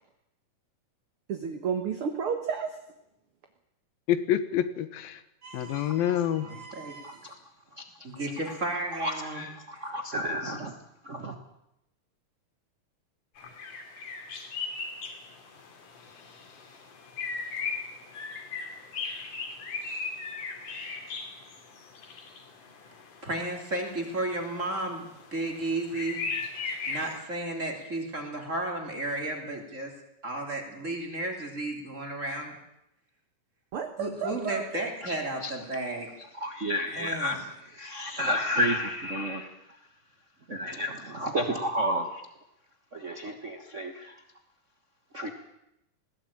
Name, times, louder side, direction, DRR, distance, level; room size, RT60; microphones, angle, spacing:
voice 1, 1.3-2.8 5.4-7.2 33.7-34.6, right 7 dB, 50° right, 5 dB, 1.8 m, -33 dB
voice 2, 4.1-5.2 5.5-6.5, left 10 dB, 85° left, 12 dB, 3.0 m, -27 dB
voice 3, 6.4-7.0 8.0-9.5 9.7-9.8 23.2-26.2 26.9-29.9 30.2-32.5 34.0-36.1 36.9-37.4, right 2 dB, 20° right, 2 dB, 3.2 m, -33 dB
voice 4, 9.0-9.5 9.8-10.7 11.0-11.3 35.0-35.1 35.4-35.5 36.4-37.4 37.8-39.5 40.5-42.1 42.9-44.1 45.1-45.3, equal, 90° right, 4 dB, 0.6 m, -30 dB
sound 1, 13.4-27.2, left 4 dB, 65° left, 4.2 m, -38 dB
20.5 x 16.5 x 8.9 m, 0.84 s
omnidirectional pair, 4.0 m